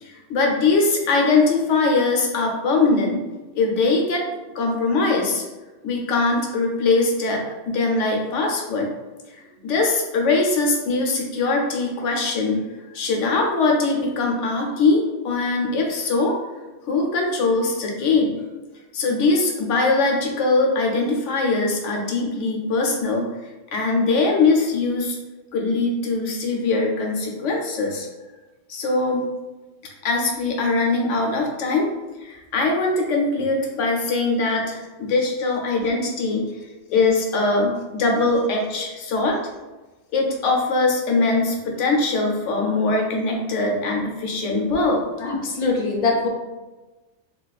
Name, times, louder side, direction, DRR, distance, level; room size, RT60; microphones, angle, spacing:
voice 1, 0.0-3.2 3.5-4.2 4.5-5.4 5.8-8.9 9.6-12.6 12.9-16.4 16.9-18.3 18.9-23.3 23.7-25.2 25.5-28.1 28.7-29.3 30.0-31.9 32.2-36.5 36.9-39.4 40.1-45.0, left 3 dB, 90° left, 1 dB, 1.0 m, -21 dB
voice 2, 45.2-46.3, left 3 dB, 50° left, 1 dB, 0.5 m, -23 dB
2.5 x 2.4 x 4.0 m, 1.1 s
omnidirectional pair, 1.2 m